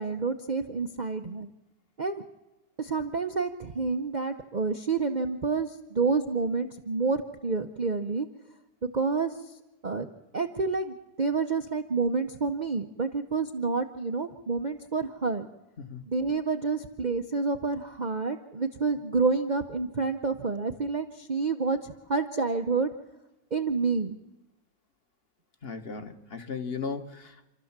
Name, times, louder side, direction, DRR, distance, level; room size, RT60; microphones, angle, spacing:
voice 1, 0.0-1.5 2.0-2.2 2.8-8.3 8.8-9.5 9.8-10.1 10.3-15.5 16.1-22.9 23.5-24.2, right 4 dB, 40° right, 6 dB, 0.7 m, -29 dB
voice 2, 25.6-27.5, left 5 dB, 40° left, 8 dB, 1.5 m, -36 dB
28.0 x 13.0 x 7.3 m, 1.0 s
omnidirectional pair, 1.7 m